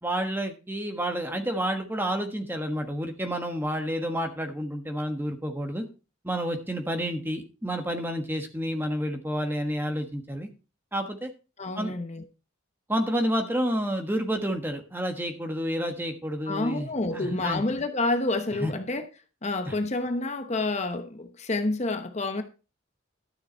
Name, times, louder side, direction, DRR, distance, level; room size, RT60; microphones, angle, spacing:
voice 1, 0.0-5.8 6.2-10.5 10.9-11.3 11.7-11.9 12.9-17.6 18.6-18.7 19.7-19.8, equal, 10° right, 1.4 m, -29 dB
voice 2, 11.6-12.2 16.5-19.1 19.4-22.4, left 2 dB, 35° left, 0.9 m, -28 dB
12.5 x 6.8 x 4.5 m
head